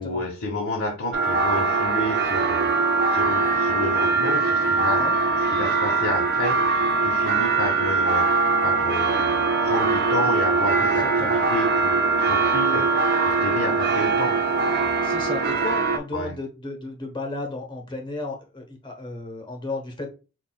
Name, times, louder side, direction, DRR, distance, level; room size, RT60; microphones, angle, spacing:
voice 1, 0.0-8.3 8.6-14.4 16.1-16.3, left 2 dB, 65° left, -2 dB, 0.9 m, -30 dB
sound 1, 1.1-16.0, right 4 dB, 50° right, 0.6 m, -22 dB
voice 2, 10.8-11.4 15.0-20.1, left 2 dB, 20° left, 2 dB, 0.9 m, -34 dB
5.8 x 2.3 x 2.3 m, 0.32 s
head